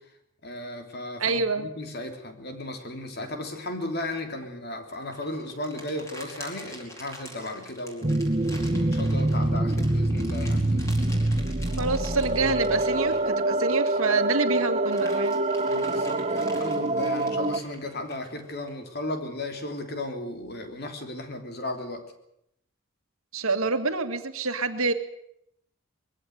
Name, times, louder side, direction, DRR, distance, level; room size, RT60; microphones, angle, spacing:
voice 1, 0.4-8.2 8.7-10.8 15.7-22.0, left 1 dB, 50° left, 6 dB, 3.3 m, -35 dB
voice 2, 1.2-1.7 11.8-15.4 23.3-24.9, right 3 dB, 85° right, 7 dB, 2.1 m, -27 dB
sound 1, 4.9-14.2 14.6-18.7, equal, 15° left, 4.9 m, -46 dB
sound 2, 8.0-17.6, right 2 dB, 30° right, 1.0 m, -25 dB
22.5 x 16.0 x 9.5 m, 0.77 s
head